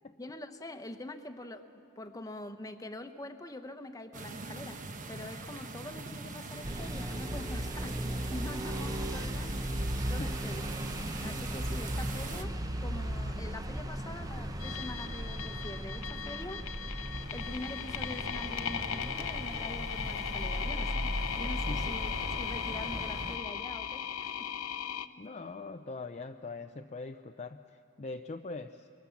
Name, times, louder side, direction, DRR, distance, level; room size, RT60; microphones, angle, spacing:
voice 1, 0.2-9.7 10.1-10.6 11.2-16.7 17.3-22.1 22.4-24.5, left 1 dB, 15° left, 7 dB, 1.0 m, -44 dB
sound 1, 4.1-12.4, right 3 dB, 35° right, 1.1 m, -43 dB
sound 2, 6.6-23.4, equal, 15° right, 0.8 m, -37 dB
voice 2, 10.2-10.5 21.7-21.9 25.2-28.9, left 3 dB, 30° left, 6 dB, 0.5 m, -42 dB
sound 3, 14.6-25.1, left 8 dB, 65° left, 0.8 m, -37 dB
24.0 x 23.5 x 7.1 m, 2.5 s
head